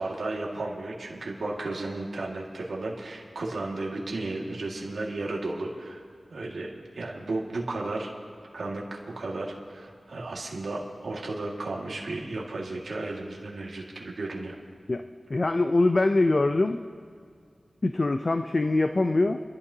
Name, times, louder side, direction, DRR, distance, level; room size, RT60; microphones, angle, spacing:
voice 1, 0.0-6.0 6.3-8.1 8.5-14.6, right 2 dB, 90° right, -2 dB, 1.9 m, -34 dB
voice 2, 14.9-16.8 17.8-19.4, left 2 dB, 45° left, 7 dB, 0.5 m, -23 dB
29.5 x 12.0 x 2.8 m, 2.1 s
wide cardioid pair, 70°, 0 cm